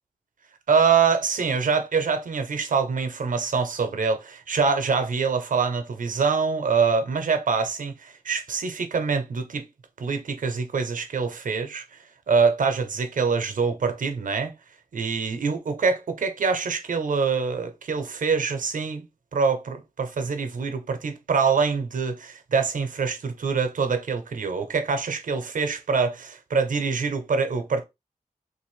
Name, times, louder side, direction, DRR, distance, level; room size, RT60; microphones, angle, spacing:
voice 1, 0.7-9.6 10.0-11.8 12.3-14.5 14.9-19.1 19.3-27.8, right 5 dB, 70° right, 0.7 m, -25 dB
3.2 x 2.5 x 3.1 m
wide cardioid pair, 120°, 14 cm